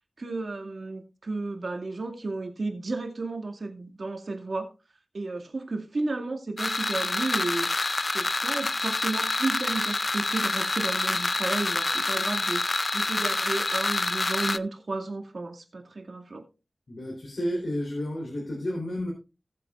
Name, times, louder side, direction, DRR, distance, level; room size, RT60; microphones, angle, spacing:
voice 1, 0.2-4.7 5.1-7.7 8.1-12.6 12.9-16.4, right 3 dB, 65° right, 3 dB, 2.2 m, -33 dB
sound 1, 6.6-14.6, left 2 dB, 45° left, 0.5 m, -27 dB
voice 2, 16.9-19.1, equal, 65° left, -1 dB, 3.4 m, -31 dB
18.5 x 7.6 x 2.4 m, 0.29 s
wide cardioid pair, 90°, 0 cm